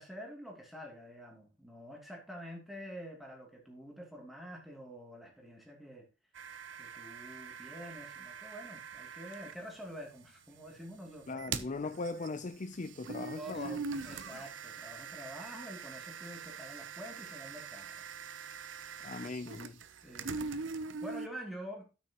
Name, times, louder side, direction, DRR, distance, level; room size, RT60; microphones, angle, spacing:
voice 1, 0.0-6.1 6.8-11.7 13.3-18.0 20.0-20.6 21.0-21.9, equal, ahead, 2.7 m, -47 dB
sound 1, 6.4-9.6 11.3-21.3, right 5 dB, 85° right, 0.7 m, -43 dB
voice 2, 11.3-13.8 19.0-19.8, left 3 dB, 40° left, 0.5 m, -39 dB
12.5 x 6.3 x 3.0 m
head